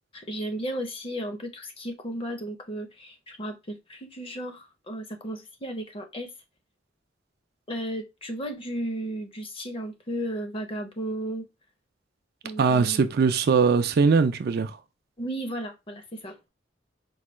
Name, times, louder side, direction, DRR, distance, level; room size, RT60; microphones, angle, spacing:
voice 1, 0.1-6.3 7.7-11.5 12.4-13.0 15.2-16.4, right 1 dB, 30° left, 0.7 m, -34 dB
voice 2, 12.6-14.8, right 5 dB, 55° right, 0.4 m, -21 dB
4.7 x 2.3 x 3.0 m
head